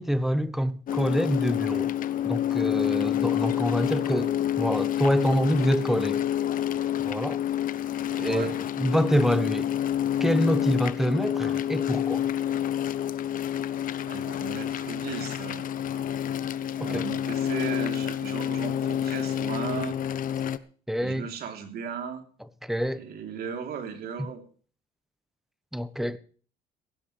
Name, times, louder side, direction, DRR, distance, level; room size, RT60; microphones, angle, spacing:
voice 1, 0.0-1.9 2.2-6.2 7.0-7.4 8.2-9.7 10.2-12.3 16.8-17.1 20.9-21.3 22.6-23.0 25.7-26.2, equal, ahead, 1.2 m, -26 dB
sound 1, 0.9-20.6, left 10 dB, 55° left, 0.9 m, -28 dB
voice 2, 8.1-8.6 14.0-16.0 16.8-20.0 21.0-22.2 22.9-24.4, right 7 dB, 65° right, 3.6 m, -36 dB
17.0 x 15.5 x 3.4 m
cardioid pair, 110°, 17 cm